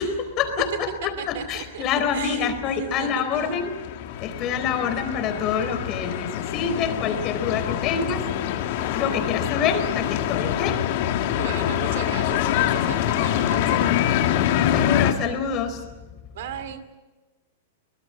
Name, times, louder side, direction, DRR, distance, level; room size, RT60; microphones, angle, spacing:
voice 1, 0.0-3.7 4.0-8.3 8.9-10.8 14.7-15.8, left 6 dB, 40° left, 8 dB, 4.1 m, -26 dB
voice 2, 1.2-1.8 2.1-2.5 2.8-3.5 11.4-14.2 16.3-16.8, right 8 dB, 65° right, 11 dB, 2.4 m, -36 dB
sound 1, 3.0-15.1, left 11 dB, 60° left, 2.1 m, -25 dB
24.5 x 20.0 x 7.8 m, 1.2 s
hypercardioid pair, 120°, 0 cm